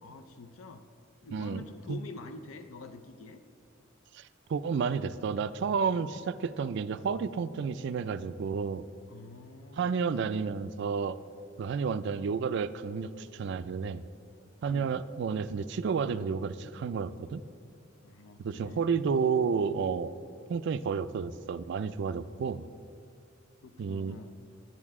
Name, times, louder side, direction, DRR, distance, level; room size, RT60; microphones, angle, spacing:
voice 1, 0.0-0.8 1.2-3.4 9.1-10.0 14.7-15.0 18.0-18.8 23.6-24.3, left 3 dB, 85° left, 7 dB, 0.5 m, -46 dB
voice 2, 1.3-2.0 4.1-8.8 9.8-11.2 11.6-14.0 14.6-17.4 18.4-20.1 20.5-22.6 23.8-24.2, right 5 dB, 60° right, 13 dB, 0.3 m, -31 dB
10.5 x 10.5 x 3.6 m, 2.4 s
head